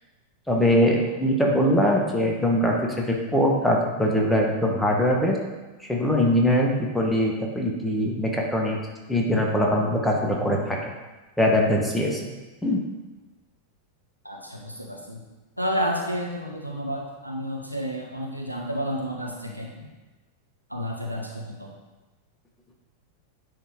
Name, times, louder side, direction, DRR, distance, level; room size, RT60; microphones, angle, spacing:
voice 1, 0.5-5.4 5.9-8.8 9.1-10.9 11.4-12.3 12.6-12.8, equal, 5° left, -1 dB, 1.2 m, -22 dB
voice 2, 14.2-15.2 15.6-19.9 20.7-21.7, equal, 90° right, -1 dB, 1.0 m, -31 dB
9.8 x 3.5 x 3.8 m, 1.2 s
figure-of-eight pair, 90°, 0 cm